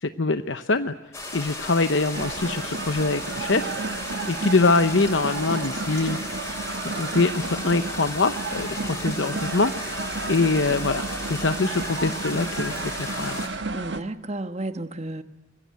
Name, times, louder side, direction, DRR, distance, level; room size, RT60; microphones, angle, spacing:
voice 1, 0.0-0.9 1.3-3.7 4.3-6.5 7.0-9.7 10.3-13.4, left 3 dB, 60° left, 9 dB, 0.9 m, -24 dB
sound 1, 1.1-13.5, left 2 dB, 15° left, 6.8 m, -35 dB
sound 2, 2.1-14.0, right 3 dB, 55° right, 1.4 m, -32 dB
voice 2, 13.7-15.2, right 2 dB, 30° right, 9 dB, 1.4 m, -32 dB
25.0 x 22.0 x 9.4 m, 1.0 s
head